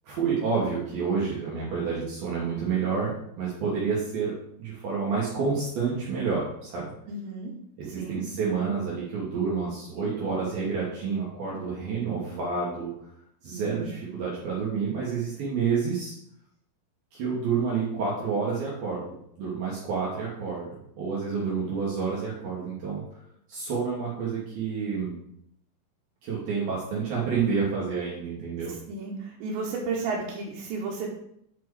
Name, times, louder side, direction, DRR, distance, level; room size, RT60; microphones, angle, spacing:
voice 1, 0.1-4.3 4.6-6.9 7.8-12.9 13.4-16.1 17.1-20.7 21.0-23.0 23.5-25.2 26.2-28.7, right 5 dB, 65° right, -6 dB, 2.9 m, -29 dB
voice 2, 7.1-7.5 7.9-8.2 13.5-13.9 28.7-31.1, right 3 dB, 80° right, -4 dB, 3.3 m, -33 dB
8.4 x 4.5 x 4.7 m, 0.74 s
omnidirectional pair, 5.0 m